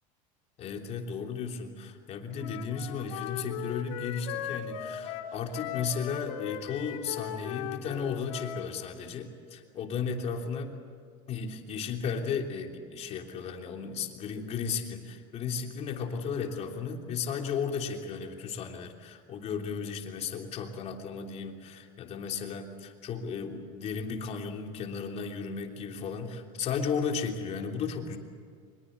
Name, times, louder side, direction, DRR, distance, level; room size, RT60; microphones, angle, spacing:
voice 1, 0.6-10.7 11.3-28.2, left 6 dB, 35° left, 3 dB, 3.2 m, -35 dB
Wind instrument woodwind instrument, 2.4-8.7, left 10 dB, 70° left, 2.2 m, -38 dB
24.0 x 22.0 x 8.0 m, 2.1 s
supercardioid pair, 135°, 18 cm